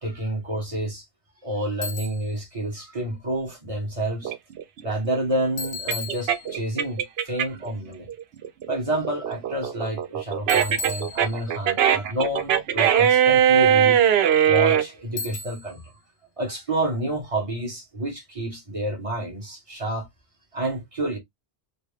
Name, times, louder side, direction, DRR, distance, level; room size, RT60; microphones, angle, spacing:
voice 1, 0.0-1.0 1.4-4.3 4.8-8.1 8.7-14.0 14.4-15.9 16.4-20.1 20.5-21.2, right 1 dB, 30° right, 1.4 m, -29 dB
Bicycle, 1.8-2.3 5.6-6.8 10.5-11.7 15.2-15.8, left 3 dB, 85° left, 1.2 m, -35 dB
sound 1, 4.3-7.7 8.1-14.8, right 9 dB, 75° right, 0.8 m, -20 dB
4.1 x 2.1 x 3.4 m
omnidirectional pair, 1.1 m